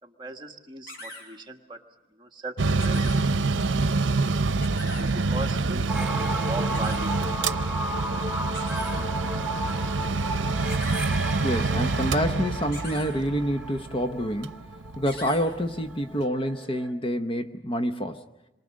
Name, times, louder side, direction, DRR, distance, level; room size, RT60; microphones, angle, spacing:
voice 1, 0.0-4.2 4.9-7.6, right 2 dB, 25° right, 4 dB, 1.5 m, -40 dB
sound 1, 0.9-1.2 2.8-3.2 4.6-5.0 6.7-7.0 8.5-8.9 10.7-11.1 12.7-13.1 15.1-15.4, left 1 dB, 60° left, 7.1 m, -40 dB
Mechanical fan, 2.6-15.9, right 3 dB, 85° right, 0.7 m, -27 dB
sound 2, 5.9-16.9, right 1 dB, 5° right, 1.2 m, -35 dB
voice 2, 11.4-14.6 15.0-18.2, equal, 30° left, 7 dB, 0.9 m, -27 dB
27.5 x 23.5 x 6.4 m, 1.0 s
head